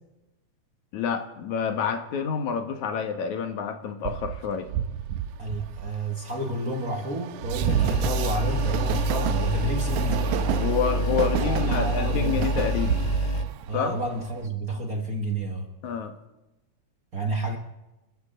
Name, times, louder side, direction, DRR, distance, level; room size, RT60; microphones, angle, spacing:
voice 1, 0.9-4.7 10.6-13.0 13.7-14.0 15.8-16.1, left 6 dB, 80° left, 6 dB, 2.9 m, -28 dB
Train, 4.0-14.5, right 11 dB, 90° right, 2.1 m, -31 dB
voice 2, 5.4-10.4 11.4-12.5 13.7-15.7 17.1-17.6, right 1 dB, 40° right, 3 dB, 1.5 m, -30 dB
sound 1, 7.6-13.4, equal, 35° left, 0.6 m, -26 dB
28.5 x 13.0 x 3.8 m, 0.99 s
omnidirectional pair, 3.3 m